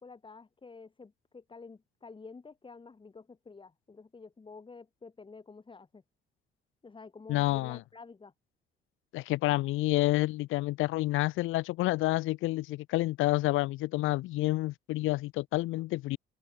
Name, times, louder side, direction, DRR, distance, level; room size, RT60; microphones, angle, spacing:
voice 1, 0.0-6.0 6.8-8.3 15.7-15.8, left 4 dB, 25° left, 1.7 m, -50 dB
voice 2, 7.3-7.8 9.1-16.2, left 18 dB, 90° left, 0.6 m, -29 dB
open air
cardioid pair, 90°, 20 cm